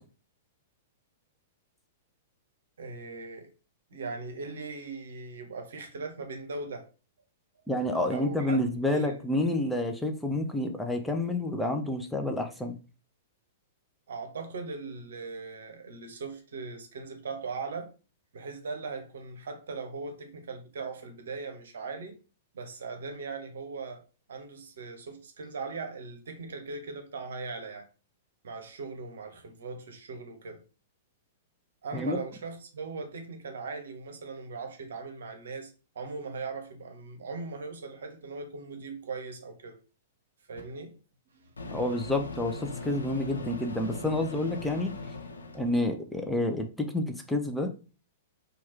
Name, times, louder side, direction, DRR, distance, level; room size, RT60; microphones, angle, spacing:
voice 1, 2.8-3.5 3.9-6.9 8.0-8.6 8.9-9.2 14.1-17.9 18.3-22.2 22.5-24.0 24.3-27.9 28.4-30.6 31.8-39.8 40.5-41.0 41.3-41.5, right 4 dB, 70° right, 0.7 m, -39 dB
voice 2, 7.7-12.8 31.9-32.2 41.7-44.9 45.5-47.7, left 1 dB, 5° left, 0.4 m, -29 dB
Microwave oven, 40.6-40.7 41.6-45.8, left 2 dB, 85° left, 0.5 m, -39 dB
2.9 x 2.3 x 3.2 m
hypercardioid pair, 110°, 0 cm